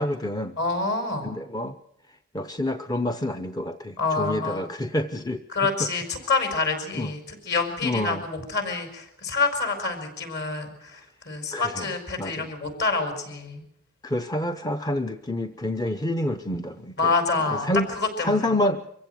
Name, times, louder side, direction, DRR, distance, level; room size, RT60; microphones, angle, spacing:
voice 1, 0.0-0.6 1.2-1.8 2.3-5.9 6.9-7.1 7.8-8.2 11.5-11.9 12.2-12.5 14.0-17.1 17.5-17.9 18.2-18.9, left 1 dB, 15° left, 7 dB, 0.8 m, -28 dB
voice 2, 0.6-1.3 4.0-4.7 5.5-7.2 7.5-11.0 11.3-13.6 17.0-17.7 18.0-18.3, left 3 dB, 50° left, 6 dB, 5.1 m, -27 dB
24.5 x 15.5 x 7.9 m, 0.79 s
head